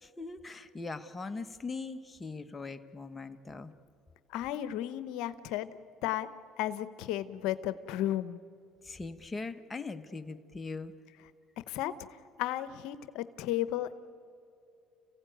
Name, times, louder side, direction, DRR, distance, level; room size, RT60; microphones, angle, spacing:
voice 1, 0.0-3.7 8.8-10.9, left 3 dB, 20° left, 8 dB, 1.2 m, -40 dB
voice 2, 4.3-5.7 6.0-6.3 6.6-8.4 11.7-11.9 12.4-13.9, left 13 dB, 80° left, 13 dB, 0.8 m, -33 dB
30.0 x 16.0 x 9.2 m, 2.6 s
supercardioid pair, 90°, 0 cm